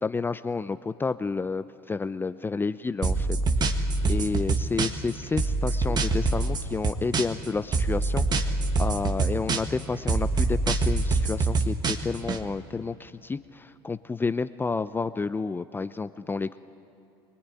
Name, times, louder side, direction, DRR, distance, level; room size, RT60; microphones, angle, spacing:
voice 1, 0.0-3.3 3.6-16.6, left 4 dB, 15° left, 12 dB, 0.6 m, -30 dB
sound 1, 3.0-5.1 5.4-7.5 7.7-9.8 10.1-12.4, right 3 dB, 35° right, 1.8 m, -25 dB
24.0 x 21.0 x 9.8 m, 2.7 s
hypercardioid pair, 85°, 13 cm